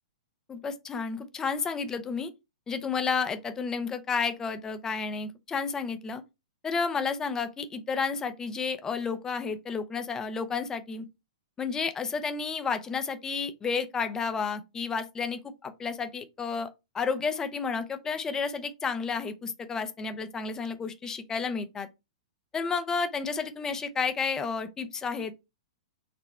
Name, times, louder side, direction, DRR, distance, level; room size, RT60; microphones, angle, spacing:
voice 1, 0.5-2.3 2.7-6.2 6.6-11.0 11.6-16.7 16.9-21.9 22.5-25.4, left 5 dB, 15° left, 0.6 m, -31 dB
4.2 x 2.1 x 4.2 m
hypercardioid pair, 120°, 4 cm